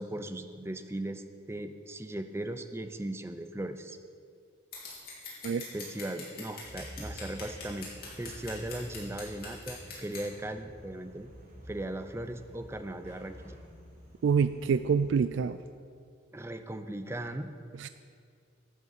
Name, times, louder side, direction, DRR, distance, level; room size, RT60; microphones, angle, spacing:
voice 1, 0.0-4.0 5.7-7.9 8.2-11.3 11.7-13.6 16.3-17.5, right 1 dB, 15° right, 8 dB, 0.5 m, -38 dB
Scissors, 4.7-10.2, left 4 dB, 50° left, 3.3 m, -43 dB
sound 1, 6.6-15.1, equal, 50° right, 3.3 m, -49 dB
voice 2, 14.2-15.6 17.8-17.9, right 6 dB, 80° right, 12 dB, 0.3 m, -26 dB
12.0 x 6.5 x 7.3 m, 2.2 s
head